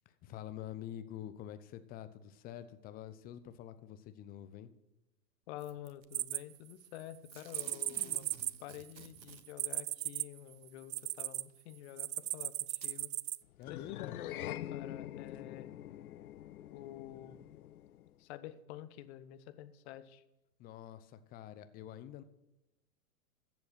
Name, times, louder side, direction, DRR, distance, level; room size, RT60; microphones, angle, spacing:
voice 1, 0.2-4.7 13.6-14.2 20.6-22.2, left 11 dB, 20° left, 12 dB, 0.6 m, -47 dB
voice 2, 5.5-8.3 8.6-13.1 13.7-15.7 16.7-17.4 18.2-20.2, left 12 dB, 40° left, 13 dB, 1.0 m, -49 dB
Packing tape duct tape / Tearing, 5.6-6.1 7.3-9.8 11.0-11.1 12.0-12.1 12.7-13.0 13.6-13.7, right 6 dB, 90° right, 1.2 m, -54 dB
sound 1, 6.1-7.0 7.5-11.4 12.0-13.4, right 15 dB, 55° right, 0.5 m, -36 dB
sound 2, 13.6-18.2, left 12 dB, 60° left, 0.7 m, -45 dB
14.5 x 7.7 x 5.9 m, 0.96 s
hypercardioid pair, 115°, 50 cm